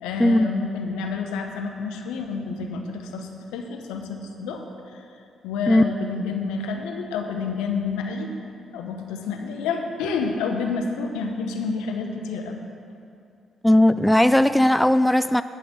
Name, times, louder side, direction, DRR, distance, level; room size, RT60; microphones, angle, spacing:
voice 1, 0.0-4.6 4.9-5.0 5.4-8.3 8.7-12.6, left 5 dB, 75° left, 4 dB, 0.9 m, -29 dB
voice 2, 13.6-15.4, left 1 dB, 5° left, 13 dB, 0.3 m, -17 dB
10.5 x 5.8 x 7.1 m, 2.5 s
hypercardioid pair, 45°, 0 cm